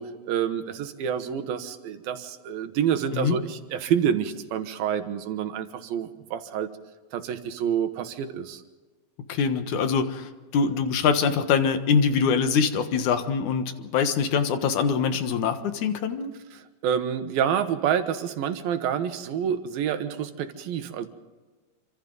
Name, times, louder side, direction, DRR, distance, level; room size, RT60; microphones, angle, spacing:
voice 1, 0.0-6.7 7.1-8.6 16.5-21.1, right 8 dB, 80° right, 9 dB, 3.1 m, -28 dB
voice 2, 9.3-16.3, left 6 dB, 60° left, 8 dB, 2.6 m, -24 dB
27.5 x 26.0 x 4.0 m, 1.3 s
omnidirectional pair, 4.2 m